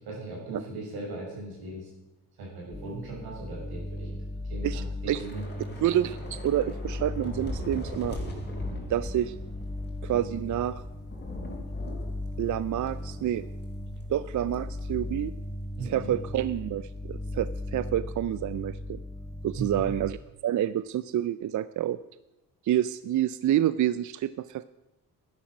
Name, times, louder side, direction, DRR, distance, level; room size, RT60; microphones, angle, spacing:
voice 1, 0.0-1.9 2.4-4.2 4.4-5.7 15.8-16.2 19.5-19.9, right 2 dB, 90° right, -2 dB, 6.0 m, -38 dB
sound 1, 2.7-20.1, left 1 dB, 10° left, 1.0 m, -37 dB
voice 2, 4.6-5.2 5.8-8.2 8.9-9.3 10.0-10.8 12.4-13.4 14.1-15.3 15.8-19.0 19.4-20.2 20.4-22.0 22.6-24.6, right 12 dB, 55° right, 15 dB, 0.5 m, -28 dB
Thunder / Rain, 5.1-13.7 14.0-14.2 14.5-14.8, left 2 dB, 30° left, 3.7 m, -41 dB
11.5 x 10.5 x 6.2 m, 0.98 s
cardioid pair, 95°, 37 cm